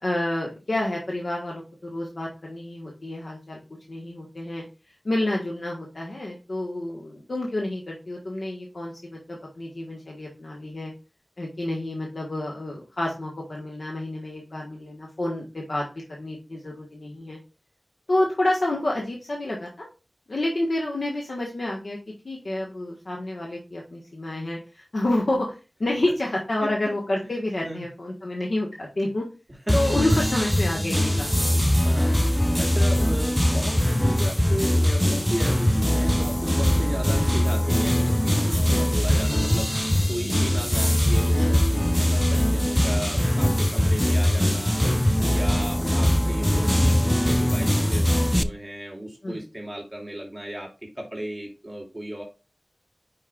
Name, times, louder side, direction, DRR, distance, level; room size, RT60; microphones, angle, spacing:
voice 1, 0.0-3.6 3.9-4.6 5.0-10.9 11.4-17.4 18.1-19.8 20.3-22.0 22.2-29.2 29.7-31.6 38.7-38.9 43.2-43.3 45.6-45.7 49.2-49.4, left 1 dB, 80° left, -2 dB, 1.4 m, -29 dB
voice 2, 27.2-27.8 29.7-29.9 31.1-44.8 45.2-52.2, right 1 dB, 20° right, -1 dB, 2.7 m, -35 dB
sound 1, 29.7-48.4, equal, 5° left, 0.4 m, -21 dB
8.9 x 5.2 x 2.4 m, 0.31 s
wide cardioid pair, 50°, 0 cm